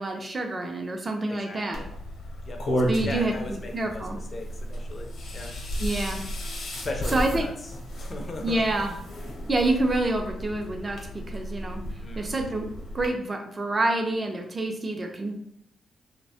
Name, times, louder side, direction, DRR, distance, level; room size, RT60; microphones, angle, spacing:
voice 1, 0.0-1.8 2.9-4.2 5.8-6.2 7.1-7.4 8.4-9.0 9.5-11.0 11.3-11.8 12.2-12.7 12.9-15.3, right 2 dB, 25° right, 3 dB, 0.4 m, -27 dB
voice 2, 1.3-1.9 2.4-2.6 3.0-5.5 6.7-7.5 7.9-8.8 12.0-12.5, left 2 dB, 35° left, 3 dB, 0.4 m, -38 dB
sound 1, 1.7-13.1, equal, 75° left, 0.7 m, -33 dB
2.7 x 2.1 x 2.7 m, 0.69 s
cardioid pair, 125°, 0 cm